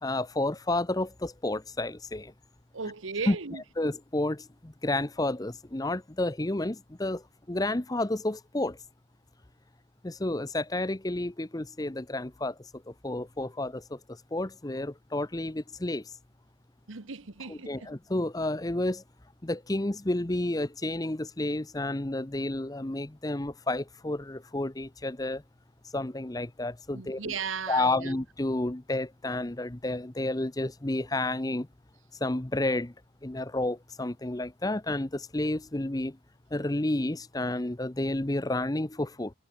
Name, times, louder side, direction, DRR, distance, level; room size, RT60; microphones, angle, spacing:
voice 1, 0.0-2.3 3.3-3.4 3.8-7.2 7.5-8.8 10.0-12.5 13.0-14.0 14.3-16.0 17.5-19.0 19.4-25.4 25.9-27.3 27.7-31.7 32.2-32.9 33.2-36.2 36.5-39.3, left 2 dB, 20° left, 0.8 m, -30 dB
voice 2, 2.7-3.6 16.9-17.9 26.9-28.2, right 5 dB, 90° right, 1.3 m, -36 dB
head